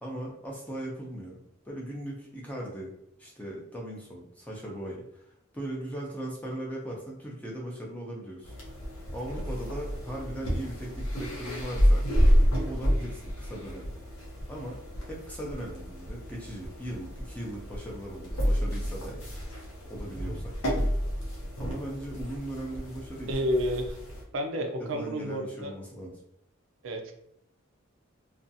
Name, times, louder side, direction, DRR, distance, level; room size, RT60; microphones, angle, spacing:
voice 1, 0.0-2.9 3.2-5.2 5.5-8.5 9.1-12.0 12.7-13.9 14.5-14.8 15.1-19.4 19.9-20.5 21.6-23.5 24.6-24.7 24.9-26.1, right 1 dB, 5° left, -3 dB, 0.5 m, -38 dB
sound 1, 8.4-24.2, equal, 85° left, 0.8 m, -29 dB
voice 2, 23.3-24.0 24.3-25.7 26.8-27.1, equal, 65° right, 4 dB, 0.4 m, -30 dB
2.5 x 2.3 x 2.6 m, 0.77 s
head